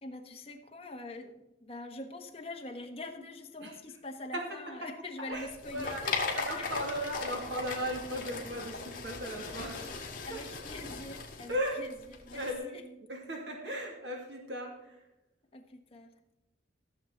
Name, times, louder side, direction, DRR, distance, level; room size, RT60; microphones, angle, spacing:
voice 1, 0.0-6.6 10.2-11.9 12.2-12.8 15.5-16.1, left 2 dB, 30° left, 4 dB, 1.2 m, -44 dB
sound 1, 5.3-12.5, left 4 dB, 50° left, 2.0 m, -38 dB
voice 2, 5.7-6.0 6.3-10.4 11.5-11.8 12.3-12.8 13.1-15.0, equal, 65° right, 1 dB, 2.4 m, -37 dB
15.0 x 7.3 x 3.9 m, 0.95 s
head